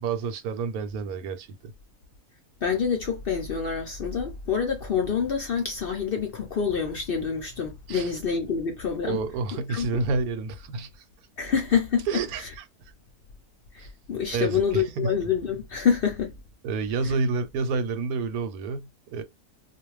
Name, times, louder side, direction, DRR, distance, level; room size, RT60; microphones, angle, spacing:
voice 1, 0.0-1.7 7.9-8.1 9.0-10.9 12.1-12.6 13.8-13.9 14.3-15.2 16.6-19.2, right 4 dB, 85° right, 1.1 m, -29 dB
voice 2, 2.6-9.2 9.7-9.9 11.4-12.1 13.7-16.4 17.0-17.1, left 6 dB, 60° left, 0.6 m, -27 dB
2.4 x 2.2 x 3.1 m
omnidirectional pair, 1.5 m